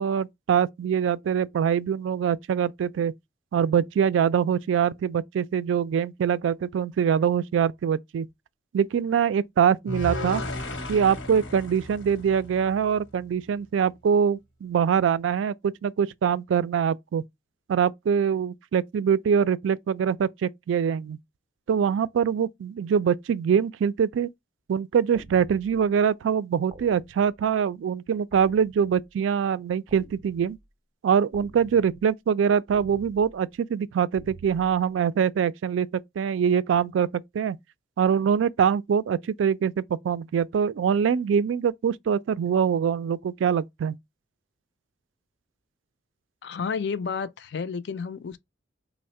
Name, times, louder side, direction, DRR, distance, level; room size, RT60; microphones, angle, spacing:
voice 1, 0.0-3.1 3.5-8.3 8.7-10.4 10.9-17.2 17.7-21.2 21.7-24.3 24.7-30.6 31.0-35.9 36.2-37.1 37.3-37.6 38.0-43.9, right 7 dB, 90° right, 0.3 m, -24 dB
sound 1, 9.9-13.1, left 1 dB, 85° left, 0.9 m, -34 dB
sound 2, 25.1-25.9 26.7-27.5 28.3-29.1 29.9-30.7 31.3-32.1 32.7-33.4 34.2-34.7, right 2 dB, 30° right, 0.5 m, -48 dB
voice 2, 46.4-48.4, left 5 dB, 65° left, 0.4 m, -31 dB
3.5 x 2.1 x 4.1 m
head